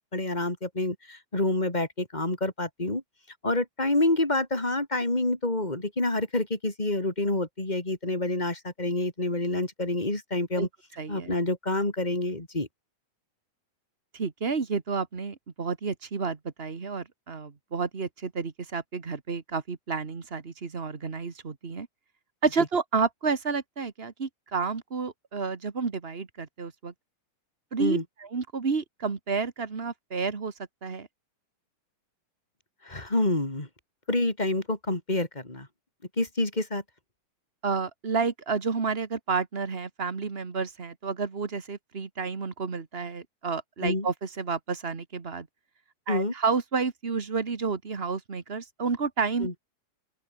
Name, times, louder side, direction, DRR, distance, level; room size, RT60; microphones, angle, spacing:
voice 1, 0.1-3.0 3.4-10.7 11.1-12.7 27.8-28.0 32.8-33.7 34.1-35.7 36.2-36.8 43.8-44.1 46.1-46.3 49.4-49.5, left 2 dB, 15° left, 3.9 m, -27 dB
voice 2, 11.0-11.3 14.1-21.9 22.4-26.9 27.7-30.5 30.8-31.1 37.6-45.5 46.1-49.6, right 5 dB, 35° right, 1.0 m, -30 dB
open air
omnidirectional pair, 3.5 m